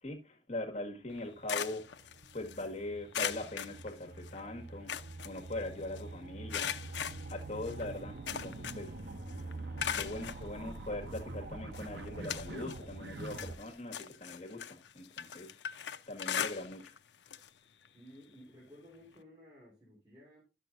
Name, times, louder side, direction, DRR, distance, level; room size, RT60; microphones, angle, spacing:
voice 1, 0.0-4.9 5.2-6.7 7.0-9.0 9.9-16.9, left 2 dB, 40° left, 1.7 m, -42 dB
sound 1, 1.1-2.7 3.1-4.4 4.7-6.0 6.5-9.0 9.3-10.4 11.1-11.2 11.7-12.9 13.2-17.0 17.3-17.5 17.8-17.9 19.2-19.3, left 8 dB, 90° left, 0.6 m, -39 dB
sound 2, 1.1-13.6, right 2 dB, 70° right, 0.9 m, -45 dB
voice 2, 17.9-20.4, equal, 25° right, 3.7 m, -55 dB
11.5 x 6.4 x 2.6 m
head